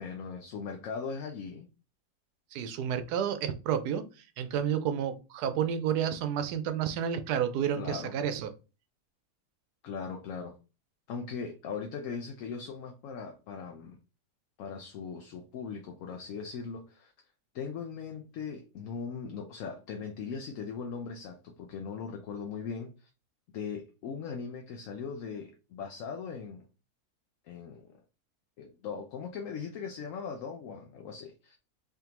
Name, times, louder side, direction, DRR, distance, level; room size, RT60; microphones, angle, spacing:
voice 1, 0.0-1.7 7.8-8.1 9.8-10.6 11.1-14.0 14.6-17.1 17.5-23.1 23.5-26.7 27.4-28.0 28.6-31.5, left 5 dB, 70° left, 0.9 m, -39 dB
voice 2, 2.5-4.0 4.4-8.5, right 8 dB, 85° right, 1.1 m, -30 dB
3.5 x 3.5 x 2.9 m
omnidirectional pair, 1.7 m